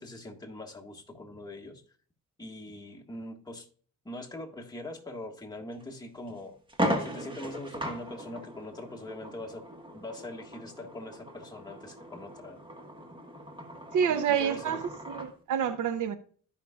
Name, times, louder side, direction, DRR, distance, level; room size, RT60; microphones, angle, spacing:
voice 1, 0.0-1.8 2.4-3.7 4.0-6.6 7.0-9.7 9.9-12.6 14.1-14.8, left 1 dB, 15° left, 1.6 m, -42 dB
sound 1, 5.7-5.8 6.3-6.4 6.7-15.3, equal, 15° right, 1.6 m, -37 dB
voice 2, 13.9-16.2, right 8 dB, 80° right, 0.9 m, -28 dB
14.0 x 5.6 x 2.4 m
cardioid pair, 90°, 30 cm